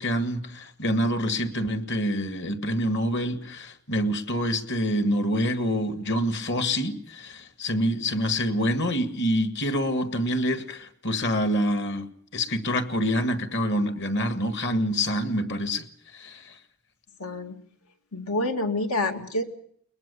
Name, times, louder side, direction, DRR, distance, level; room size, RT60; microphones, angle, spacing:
voice 1, 0.0-12.1 12.3-15.8 16.1-16.6, equal, 55° left, 9 dB, 1.8 m, -26 dB
voice 2, 17.2-17.5 18.1-19.4, left 2 dB, 90° left, 5 dB, 2.3 m, -27 dB
21.5 x 21.0 x 6.9 m, 0.63 s
head